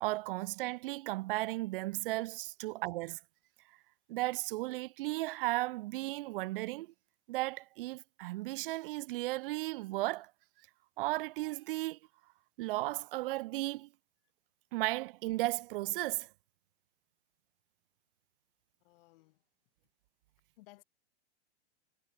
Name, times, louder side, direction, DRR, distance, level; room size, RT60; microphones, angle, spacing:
voice 1, 0.0-3.2 4.1-6.9 7.3-10.3 11.0-12.0 12.6-13.9 14.7-16.3, right 19 dB, 55° right, 0.5 m, -35 dB
voice 2, 18.8-19.4 20.6-20.8, left 20 dB, 55° left, 3.9 m, -60 dB
hypercardioid pair, 115°, 34 cm